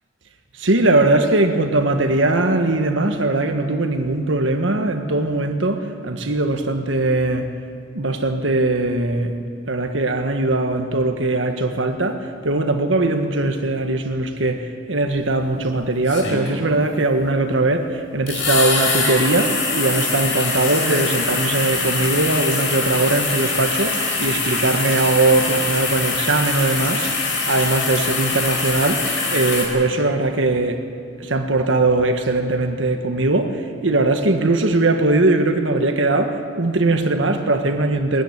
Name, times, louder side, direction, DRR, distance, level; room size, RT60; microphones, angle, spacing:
voice 1, 0.6-7.5 7.9-9.3 9.7-30.8 31.2-38.2, right 2 dB, 85° right, 5 dB, 1.5 m, -20 dB
sound 1, 15.1-15.2 16.1-16.8 18.3-29.7, left 3 dB, 80° left, 4.7 m, -23 dB
20.0 x 13.5 x 9.7 m, 2.3 s
head